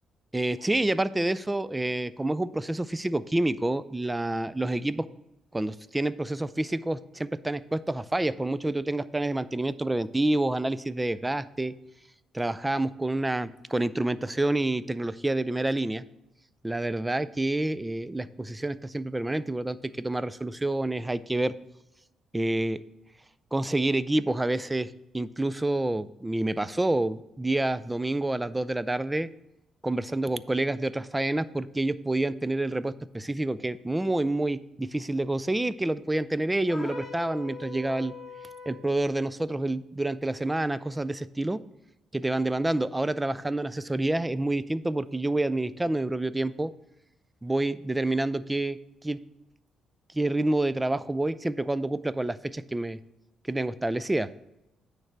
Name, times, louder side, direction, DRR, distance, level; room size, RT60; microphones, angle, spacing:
voice 1, 0.3-5.1 5.5-11.7 12.3-16.0 16.6-21.5 22.3-22.8 23.5-29.3 29.8-38.1 38.7-41.6 42.1-46.7 47.4-48.8 49.0-49.2 50.1-53.0 53.5-54.3, right 2 dB, 15° right, 16 dB, 0.3 m, -28 dB
sound 1, 36.7-38.9, left 3 dB, 30° left, 1.4 m, -41 dB
8.9 x 3.3 x 5.8 m, 0.88 s
cardioid pair, 90°, 0 cm